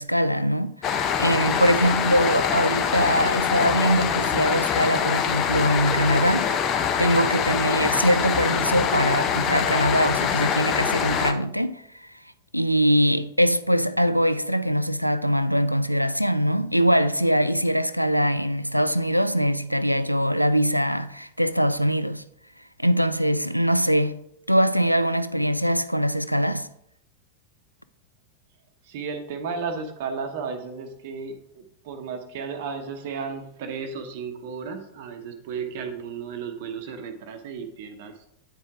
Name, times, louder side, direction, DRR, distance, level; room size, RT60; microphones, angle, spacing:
voice 1, 0.0-6.5 7.0-11.8 12.5-22.2 22.8-24.2 24.5-26.7, equal, 90° right, 0.3 m, -22 dB
sound 1, 0.8-11.3, left 7 dB, 35° left, 0.7 m, -24 dB
voice 2, 28.8-38.2, right 5 dB, 50° right, 0.9 m, -34 dB
9.0 x 4.6 x 3.5 m
figure-of-eight pair, 90°, 0 cm